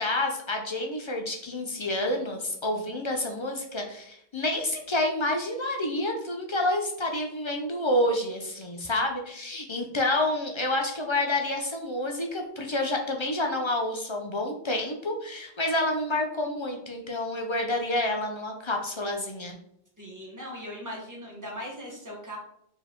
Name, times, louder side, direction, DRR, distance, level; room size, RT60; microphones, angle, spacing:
voice 1, 0.0-19.6, left 1 dB, 45° left, 2 dB, 0.4 m, -29 dB
voice 2, 20.0-22.4, equal, 20° right, -3 dB, 1.2 m, -39 dB
4.4 x 2.9 x 3.5 m, 0.72 s
omnidirectional pair, 1.1 m